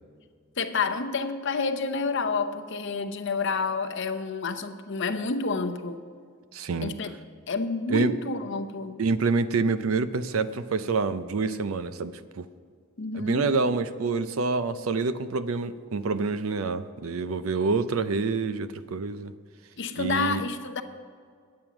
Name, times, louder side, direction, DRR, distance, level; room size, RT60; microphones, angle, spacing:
voice 1, 0.6-6.0 6.8-7.1 7.5-9.0 13.0-13.5 19.8-20.8, left 4 dB, 60° left, 9 dB, 0.7 m, -29 dB
voice 2, 6.5-6.9 7.9-8.1 9.0-12.5 13.1-19.3 20.0-20.4, right 4 dB, 80° right, 13 dB, 0.5 m, -27 dB
9.4 x 8.7 x 5.9 m, 2.1 s
head